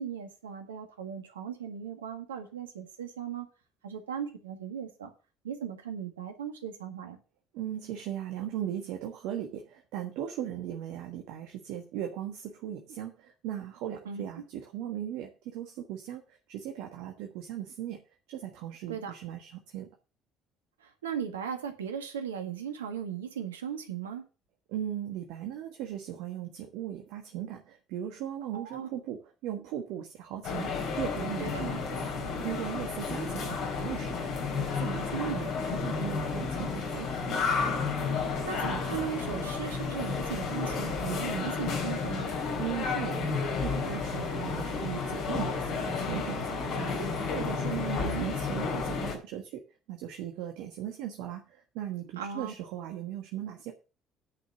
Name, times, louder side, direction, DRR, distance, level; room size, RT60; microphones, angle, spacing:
voice 1, 0.0-3.5 3.8-5.1 5.4-7.2 14.1-14.2 18.9-19.1 20.8-24.2 28.5-28.9 31.4-31.6 35.1-35.4 38.2-42.3 47.9-48.3 52.2-52.5, right 8 dB, 85° right, 6 dB, 1.7 m, -37 dB
voice 2, 7.5-16.2 16.5-18.0 18.3-19.9 24.7-30.7 31.0-31.9 32.4-34.3 34.6-37.2 42.6-49.6 49.9-53.7, right 11 dB, 70° right, 3 dB, 1.5 m, -38 dB
sound 1, 30.4-49.2, left 4 dB, 65° left, 3.7 m, -32 dB
10.0 x 5.6 x 7.3 m, 0.34 s
hypercardioid pair, 55°, 0 cm